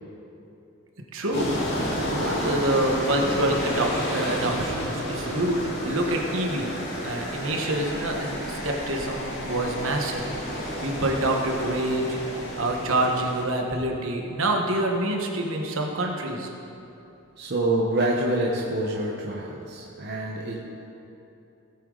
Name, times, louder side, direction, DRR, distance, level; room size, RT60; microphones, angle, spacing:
voice 1, 1.1-12.2 12.6-16.5, right 1 dB, 65° right, 1 dB, 1.4 m, -27 dB
sound 1, 1.3-13.4, equal, 50° left, 3.2 m, -31 dB
voice 2, 17.4-20.6, right 1 dB, 50° right, -3 dB, 1.1 m, -26 dB
18.0 x 8.4 x 4.0 m, 2.8 s
head